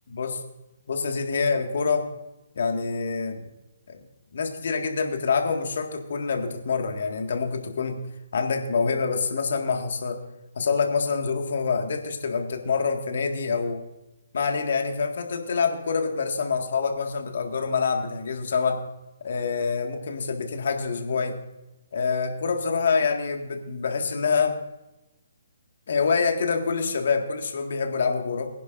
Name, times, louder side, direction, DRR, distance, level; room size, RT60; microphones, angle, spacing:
voice 1, 0.1-0.4 0.9-2.1 2.6-3.5 3.9-4.0 4.3-8.0 8.3-10.2 10.6-13.8 14.3-18.8 19.2-21.3 21.9-24.5 25.9-28.5, left 5 dB, 60° left, 4 dB, 1.9 m, -26 dB
22.0 x 10.5 x 2.6 m, 0.97 s
figure-of-eight pair, 135°, 0 cm